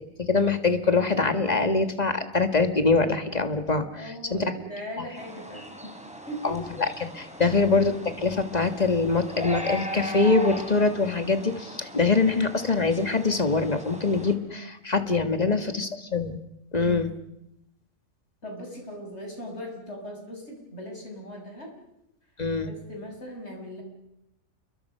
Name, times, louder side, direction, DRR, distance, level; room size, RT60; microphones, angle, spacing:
voice 1, 0.2-4.5 6.4-6.6 7.0-7.9 8.2-16.4 16.7-17.1 22.4-22.7, left 3 dB, 30° left, 8 dB, 1.7 m, -24 dB
voice 2, 3.9-5.9 6.3-6.6 7.4-7.6 15.2-15.8 16.7-17.1 18.4-21.7 22.7-23.8, equal, 55° left, 1 dB, 6.5 m, -39 dB
sound 1, 5.2-14.3, equal, 5° right, 3.2 m, -39 dB
29.5 x 22.5 x 5.6 m, 0.85 s
omnidirectional pair, 1.4 m